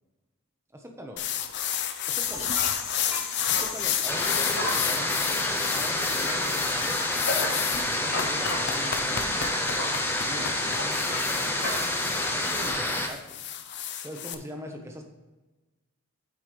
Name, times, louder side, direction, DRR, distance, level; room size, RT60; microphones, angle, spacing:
voice 1, 0.7-1.3 2.0-2.5 3.5-7.2 7.7-9.9 10.2-11.6 12.1-13.4 14.0-15.0, equal, 10° right, 2 dB, 1.1 m, -41 dB
sound 1, 1.2-14.3, left 9 dB, 50° left, 0.7 m, -31 dB
sound 2, 2.2-12.7, left 3 dB, 75° left, 2.7 m, -35 dB
sound 3, 4.1-13.1, left 1 dB, 10° left, 0.7 m, -28 dB
9.3 x 8.2 x 3.4 m, 1.2 s
head